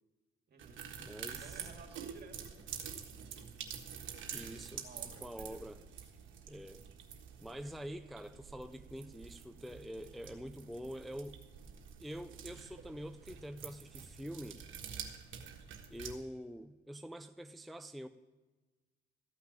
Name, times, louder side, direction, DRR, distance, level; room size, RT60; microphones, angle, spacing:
voice 1, 0.5-0.8 1.4-3.5 4.8-5.7, right 5 dB, 55° right, 4 dB, 2.1 m, -56 dB
sound 1, 0.6-16.1, right 7 dB, 75° right, 1.5 m, -48 dB
voice 2, 1.0-1.6 4.3-4.8 5.2-5.8 6.5-6.8 7.4-11.4 12.0-14.6 15.9-18.1, equal, ahead, 9 dB, 0.5 m, -46 dB
14.0 x 5.9 x 8.7 m, 1.2 s
cardioid pair, 90°, 20 cm